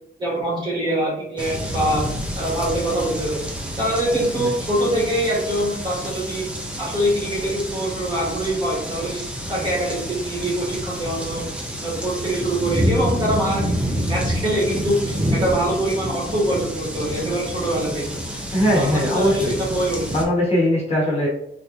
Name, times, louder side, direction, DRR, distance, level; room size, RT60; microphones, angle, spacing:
voice 1, 0.2-2.1 2.3-3.5 3.8-6.4 6.8-9.2 9.5-11.4 11.8-18.1 18.7-20.0, right 1 dB, 20° right, -6 dB, 1.2 m, -24 dB
sound 1, 1.4-20.2, equal, 5° right, 0.5 m, -28 dB
voice 2, 18.5-19.6 20.1-21.3, equal, 30° left, -6 dB, 1.1 m, -20 dB
3.3 x 2.8 x 2.5 m, 0.75 s
wide cardioid pair, 175°, 20 cm